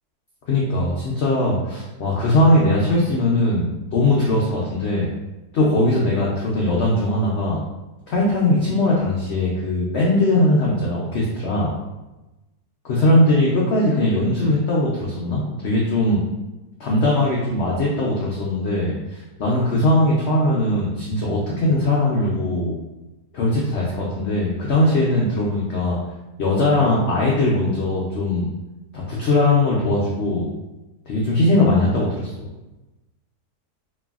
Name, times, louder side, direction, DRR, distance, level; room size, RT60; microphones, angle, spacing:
voice 1, 0.5-5.1 5.5-7.6 8.1-11.7 12.8-16.2 16.8-22.7 23.3-26.0 26.4-28.5 28.9-30.5 31.1-32.5, left 1 dB, 85° left, -4 dB, 0.5 m, -20 dB
3.0 x 2.6 x 2.3 m, 1.0 s
omnidirectional pair, 1.8 m